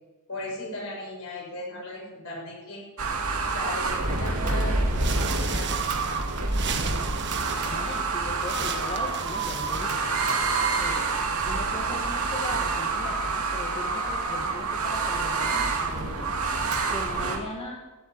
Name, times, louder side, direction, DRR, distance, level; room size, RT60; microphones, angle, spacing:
voice 1, 0.3-2.9 3.4-5.7, left 1 dB, 70° left, -1 dB, 6.5 m, -37 dB
sound 1, 3.0-17.4, right 3 dB, 90° right, 2.4 m, -27 dB
sound 2, 4.9-10.6, right 6 dB, 55° right, 1.4 m, -35 dB
voice 2, 7.6-10.1 10.7-11.1 11.4-16.6 16.9-17.8, left 2 dB, 30° left, -2 dB, 2.1 m, -39 dB
14.5 x 8.1 x 10.0 m, 1.1 s
head